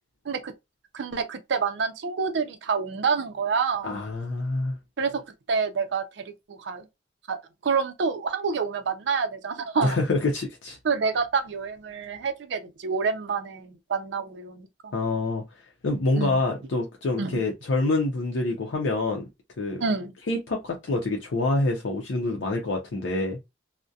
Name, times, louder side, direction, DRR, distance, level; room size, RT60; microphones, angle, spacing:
voice 1, 0.9-3.9 5.0-5.2 5.5-6.9 7.3-10.0 10.8-14.9 16.2-16.4 17.2-17.4 19.8-20.1, right 5 dB, 65° right, 0.4 m, -28 dB
voice 2, 3.8-4.8 9.8-10.8 14.9-15.4 15.8-19.3 19.6-19.8 20.3-23.4, left 2 dB, 80° left, 0.5 m, -26 dB
2.3 x 2.1 x 2.6 m
head